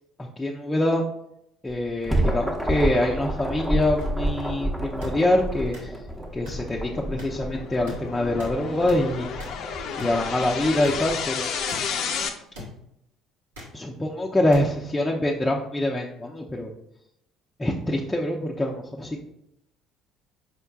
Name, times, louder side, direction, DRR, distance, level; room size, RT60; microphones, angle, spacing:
voice 1, 0.2-1.0 1.6-5.9 6.3-9.3 9.9-11.5 13.7-16.7 17.6-19.2, left 1 dB, 15° left, -2 dB, 0.6 m, -25 dB
sound 1, 1.7-11.1, right 1 dB, 10° right, 0.9 m, -30 dB
sound 2, 4.0-4.1 5.0-5.1 5.7-5.8 6.5-6.6 7.2-7.3 7.9-8.0 8.4-8.5 8.9-9.0 9.4-9.5 10.0-10.1 10.8-11.0 11.7-11.8 12.5-12.7 13.5-13.7 14.5-14.6 15.5-15.6, left 1 dB, 80° right, 1.3 m, -40 dB
sound 3, 5.7-12.3, left 6 dB, 60° left, 0.5 m, -32 dB
5.0 x 4.4 x 2.3 m, 0.79 s
hypercardioid pair, 55°, 0 cm